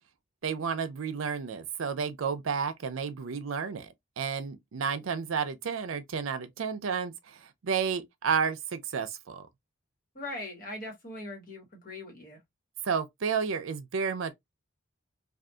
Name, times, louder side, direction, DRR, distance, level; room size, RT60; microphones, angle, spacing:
voice 1, 0.4-9.4 12.8-14.3, right 6 dB, 80° right, 0.5 m, -31 dB
voice 2, 10.1-12.4, left 2 dB, 45° left, 1.2 m, -40 dB
2.7 x 2.4 x 2.2 m
head